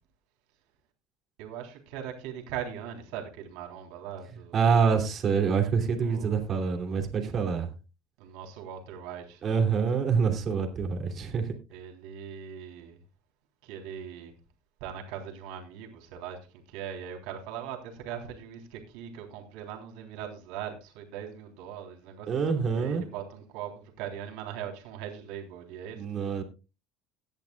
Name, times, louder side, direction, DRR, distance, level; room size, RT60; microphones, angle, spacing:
voice 1, 1.4-4.6 6.0-6.4 8.2-9.7 11.7-13.0 13.6-14.3 14.8-26.4, right 9 dB, 75° right, 3.6 m, -40 dB
voice 2, 4.5-7.7 9.4-11.5 22.3-23.0 25.9-26.4, right 6 dB, 40° right, 2.9 m, -26 dB
17.5 x 10.5 x 2.4 m
supercardioid pair, 120°, 0 cm